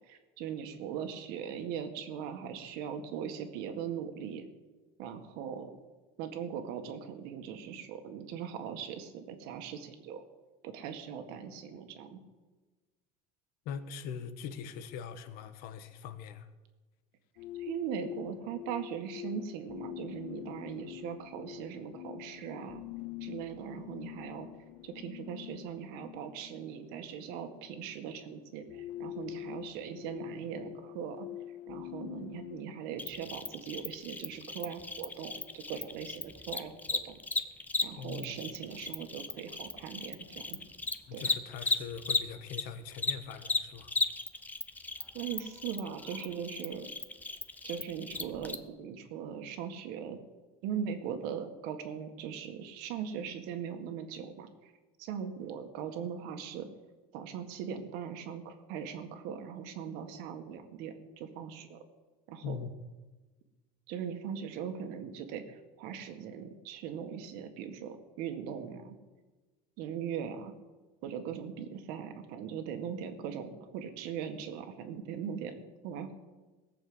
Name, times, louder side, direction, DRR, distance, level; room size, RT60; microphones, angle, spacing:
voice 1, 0.1-4.5 5.0-5.7 6.2-10.2 10.6-12.2 17.6-22.8 23.2-24.5 24.8-31.3 31.7-36.8 37.0-37.2 37.8-40.6 41.1-41.3 45.1-46.9 47.6-50.2 50.6-54.7 55.0-56.7 57.1-61.8 62.3-62.6 63.9-69.0 69.8-70.5 71.0-76.2, right 8 dB, 65° right, 7 dB, 1.9 m, -40 dB
voice 2, 13.6-16.5 38.0-38.4 41.1-43.9 62.4-62.7, left 7 dB, 60° left, 10 dB, 1.4 m, -42 dB
sound 1, 17.4-32.6, left 14 dB, 85° left, 0.5 m, -45 dB
Cricket, 33.0-42.6 42.9-48.5, left 3 dB, 10° left, 0.7 m, -35 dB
18.5 x 7.0 x 8.1 m, 1.2 s
cardioid pair, 145°, 17 cm